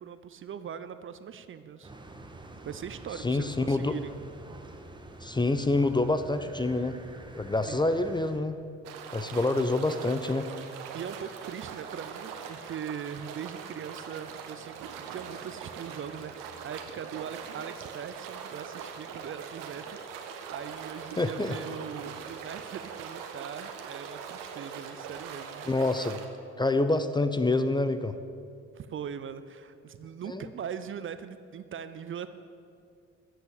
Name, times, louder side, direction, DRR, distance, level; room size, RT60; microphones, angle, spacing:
voice 1, 0.0-1.9 2.6-4.1 7.7-7.9 10.9-20.1 20.5-25.7 28.7-32.3, right 8 dB, 35° right, 12 dB, 0.7 m, -41 dB
sound 1, 1.8-8.4, right 2 dB, 10° right, 1.6 m, -47 dB
voice 2, 3.2-3.9 5.2-7.0 7.3-8.6 9.1-10.5 21.2-21.6 25.6-26.2 26.6-28.1 30.3-30.5, left 2 dB, 10° left, 10 dB, 0.7 m, -27 dB
sound 2, 8.8-26.3, right 7 dB, 60° right, 1.4 m, -42 dB
14.0 x 7.9 x 8.9 m, 2.3 s
figure-of-eight pair, 50°, 37 cm